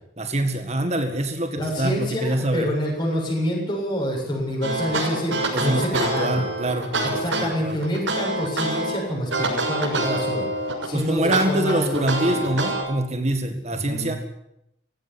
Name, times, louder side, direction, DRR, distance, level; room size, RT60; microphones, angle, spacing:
voice 1, 0.2-2.7 5.5-7.7 10.0-10.3 10.9-14.2, right 1 dB, 35° right, 6 dB, 1.8 m, -25 dB
voice 2, 1.6-6.4 7.0-10.5 10.8-12.6 13.7-14.2, equal, 25° left, -3 dB, 7.8 m, -27 dB
sound 1, 4.6-8.9 9.3-10.9 11.3-12.8, right 2 dB, 90° right, 6.7 m, -26 dB
19.0 x 16.0 x 9.9 m, 0.82 s
head